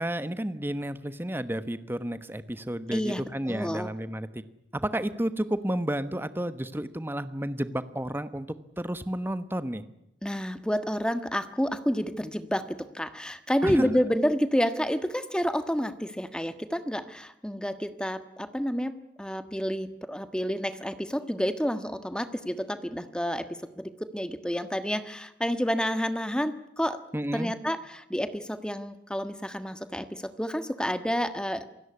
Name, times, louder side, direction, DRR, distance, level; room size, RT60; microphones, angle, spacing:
voice 1, 0.0-4.4 4.7-8.5 8.8-9.8 13.6-13.9 27.1-27.5, right 1 dB, 10° right, 13 dB, 1.1 m, -31 dB
voice 2, 2.9-3.9 10.2-18.9 19.2-23.5 23.8-27.0 27.3-31.7, equal, 5° left, 10 dB, 1.4 m, -29 dB
27.5 x 17.0 x 9.6 m, 0.82 s
head